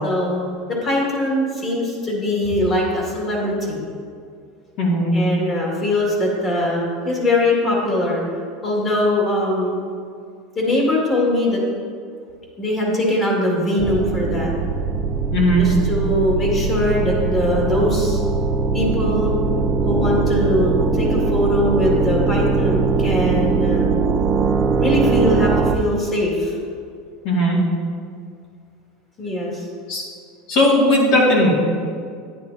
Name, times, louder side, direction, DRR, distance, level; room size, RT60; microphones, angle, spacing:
voice 1, 0.0-3.8 5.1-8.2 8.6-9.8 10.6-11.6 12.6-14.5 15.6-18.2 18.7-19.3 19.9-23.9 24.8-26.6 29.2-29.6, left 1 dB, 25° left, -3 dB, 2.2 m, -21 dB
voice 2, 4.8-5.1 15.3-15.6 27.2-27.6 29.9-30.0 30.5-31.5, left 1 dB, 55° left, -3 dB, 2.3 m, -17 dB
sound 1, 13.8-25.8, right 4 dB, 25° right, 0.4 m, -21 dB
10.0 x 9.9 x 2.8 m, 2.2 s
supercardioid pair, 150°, 0 cm